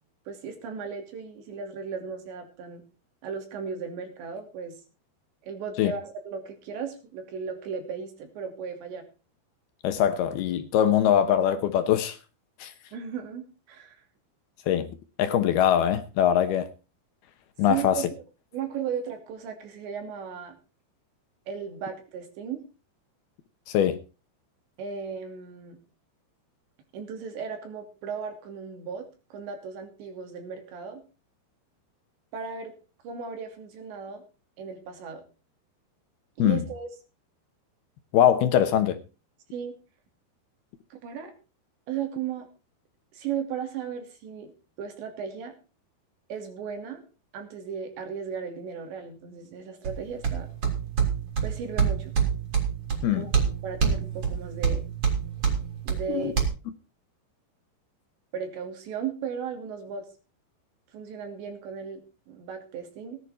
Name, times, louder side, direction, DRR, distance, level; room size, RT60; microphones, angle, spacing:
voice 1, 0.3-2.9 3.2-4.8 5.4-9.0 12.9-14.0 17.7-18.1 18.5-20.6 21.5-22.6 24.8-25.8 26.9-31.0 32.3-32.7 33.0-34.2 34.6-35.2 36.4-36.9 39.5-39.7 40.9-41.3 41.9-42.5 43.1-44.5 44.8-45.5 46.3-47.0 47.3-50.5 51.4-52.1 53.1-53.3 53.6-54.8 55.8-56.3 58.3-60.1 60.9-63.2, right 7 dB, 75° right, 5.0 m, -36 dB
voice 2, 9.8-12.2 12.6-12.7 14.7-16.7 17.6-18.1 23.7-24.0 36.4-36.7 38.1-39.0 53.0-53.2 56.1-56.3, left 10 dB, 70° left, 2.7 m, -22 dB
sound 1, 49.8-56.4, right 6 dB, 35° right, 4.0 m, -27 dB
17.0 x 11.0 x 4.3 m
omnidirectional pair, 5.1 m